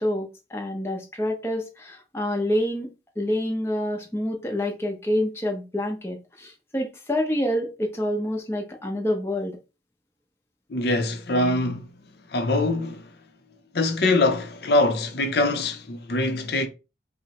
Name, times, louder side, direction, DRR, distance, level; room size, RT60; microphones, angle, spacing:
voice 1, 0.0-2.9 3.2-9.5, left 1 dB, 15° left, 0.8 m, -27 dB
voice 2, 10.7-11.9 12.3-13.1 13.7-16.7, left 2 dB, 60° left, 0.6 m, -23 dB
5.2 x 2.1 x 3.0 m
head